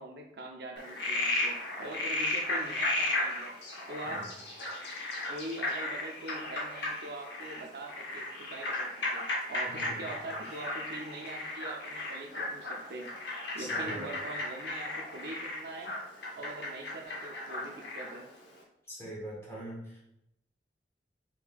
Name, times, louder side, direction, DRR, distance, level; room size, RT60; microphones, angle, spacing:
voice 1, 0.0-3.5 3.9-4.2 5.3-13.1 13.5-15.9 16.4-18.3, right 2 dB, 65° right, 2 dB, 0.5 m, -43 dB
Frog, 0.8-18.2, left 2 dB, 75° left, 0.9 m, -35 dB
voice 2, 9.7-10.1 13.6-14.1 18.9-20.0, right 1 dB, 15° left, -5 dB, 1.2 m, -42 dB
4.3 x 3.7 x 2.3 m, 0.82 s
head